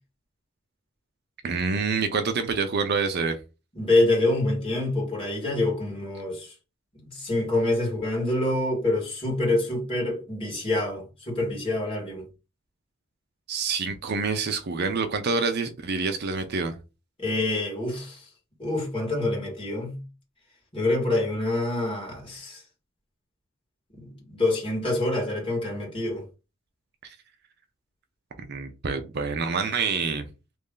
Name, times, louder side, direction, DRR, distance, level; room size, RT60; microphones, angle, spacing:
voice 1, 1.4-3.4 13.5-16.8 27.0-27.2 28.4-30.3, right 4 dB, 55° right, 0.6 m, -27 dB
voice 2, 3.8-6.5 7.1-12.3 17.2-18.3 18.6-20.0 20.7-22.6 23.9-26.2, left 2 dB, 25° left, 1.9 m, -26 dB
3.1 x 2.6 x 3.7 m
head